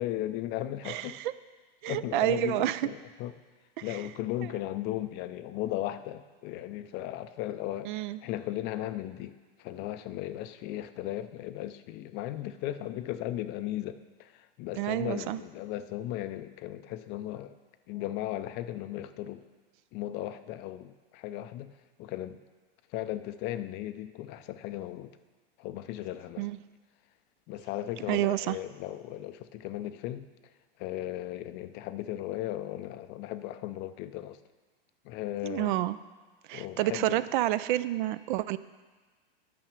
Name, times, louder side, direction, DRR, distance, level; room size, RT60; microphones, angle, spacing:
voice 1, 0.0-1.2 1.9-3.4 3.8-17.6 17.9-19.5 19.9-21.7 22.0-22.4 22.9-25.1 25.6-26.5 27.5-30.3 30.8-34.4 35.0-35.7 36.5-37.2, left 13 dB, 35° left, 12 dB, 0.5 m, -36 dB
voice 2, 0.9-1.3 1.8-2.8 7.9-8.2 14.8-15.4 26.4-26.6 28.1-28.6 35.4-36.0 36.5-38.6, right 15 dB, 55° right, 16 dB, 0.4 m, -29 dB
9.3 x 5.7 x 6.7 m, 1.3 s
hypercardioid pair, 115°, 30 cm